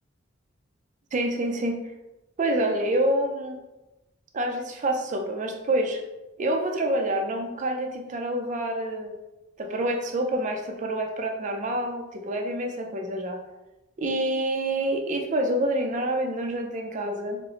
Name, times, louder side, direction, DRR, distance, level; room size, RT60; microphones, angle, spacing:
voice 1, 1.1-1.8 2.4-3.6 4.3-6.0 6.4-9.1 9.6-13.4 14.0-17.4, right 1 dB, 40° right, 3 dB, 0.4 m, -27 dB
4.0 x 2.0 x 2.8 m, 1.0 s
head